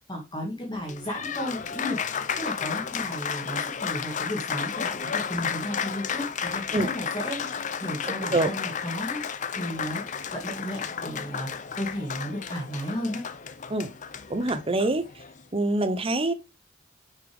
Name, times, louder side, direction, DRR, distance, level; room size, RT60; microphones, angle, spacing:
voice 1, 0.1-9.3 9.5-13.2, equal, 25° left, 2.3 m, -34 dB
Applause, 0.7-15.4, left 7 dB, 40° left, 0.6 m, -33 dB
voice 2, 14.3-15.2 15.5-16.3, right 2 dB, 30° right, 0.8 m, -25 dB
6.7 x 6.1 x 3.5 m
head